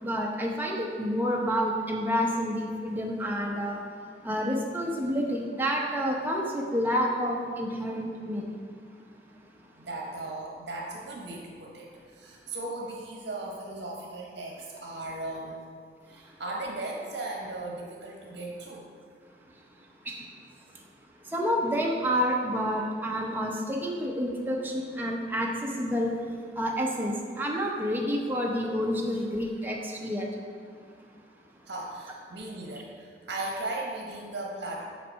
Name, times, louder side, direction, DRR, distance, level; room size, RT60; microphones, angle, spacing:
voice 1, 0.0-3.8 4.2-8.6 20.1-20.2 21.3-26.1 26.6-30.3, equal, 10° right, -1 dB, 0.7 m, -29 dB
voice 2, 9.8-15.7 16.1-18.9 31.7-34.8, right 2 dB, 70° right, -2 dB, 1.0 m, -37 dB
5.8 x 4.6 x 6.2 m, 2.2 s
head